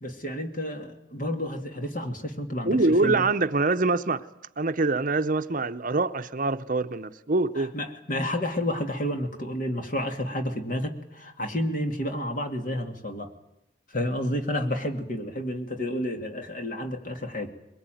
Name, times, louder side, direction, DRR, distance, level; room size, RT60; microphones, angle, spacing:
voice 1, 0.0-3.3 7.6-13.3 13.9-17.5, left 1 dB, 45° left, 2.5 m, -30 dB
voice 2, 2.7-4.2 4.6-7.7, right 3 dB, 45° right, 0.8 m, -24 dB
22.0 x 22.0 x 9.2 m
head